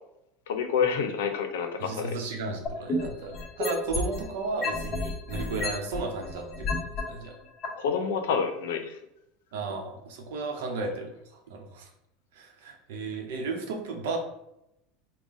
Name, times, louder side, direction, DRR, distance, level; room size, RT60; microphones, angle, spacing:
voice 1, 0.5-2.1 7.8-9.0, left 6 dB, 85° left, 6 dB, 0.5 m, -28 dB
voice 2, 1.8-7.3 9.5-11.9 12.3-14.2, right 3 dB, 85° right, 3 dB, 0.8 m, -34 dB
sound 1, 2.7-4.2 4.6-7.0 7.6-7.7, left 3 dB, 25° left, 0.7 m, -30 dB
4.0 x 2.2 x 3.6 m, 0.83 s
supercardioid pair, 125°, 0 cm